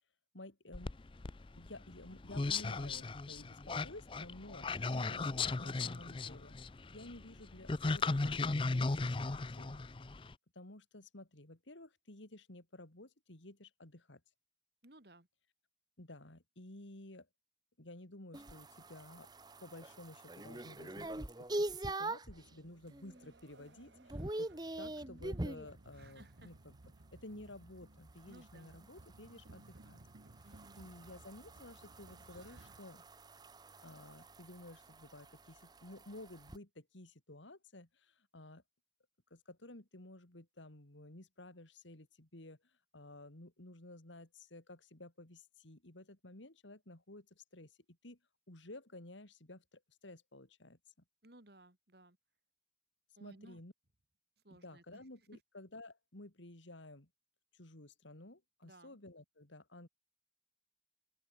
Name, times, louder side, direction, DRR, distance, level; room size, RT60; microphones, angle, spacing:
voice 1, 0.3-0.9 1.6-4.8 5.1-6.5 6.9-9.8 10.5-14.2 16.0-17.3 17.8-19.3 19.6-26.7 27.1-30.0 30.8-33.0 33.8-38.6 39.3-42.6 42.9-48.2 48.5-50.8 53.2-53.7 54.5-57.1 57.5-59.9, left 1 dB, 85° left, 3.0 m, -53 dB
sound 1, 0.7-10.3, left 3 dB, 25° left, 0.5 m, -36 dB
voice 2, 4.9-5.4 14.8-15.3 25.9-26.5 28.3-28.8 30.4-30.9 51.2-52.2 53.2-53.6 54.4-55.0 55.3-55.4 58.6-59.0, right 1 dB, 55° right, 3.1 m, -59 dB
sound 2, 18.3-22.4 22.9-23.3 23.6-25.7 28.2-36.6, right 1 dB, 20° right, 1.2 m, -44 dB
sound 3, 22.3-32.8, right 2 dB, 75° right, 1.2 m, -60 dB
open air
head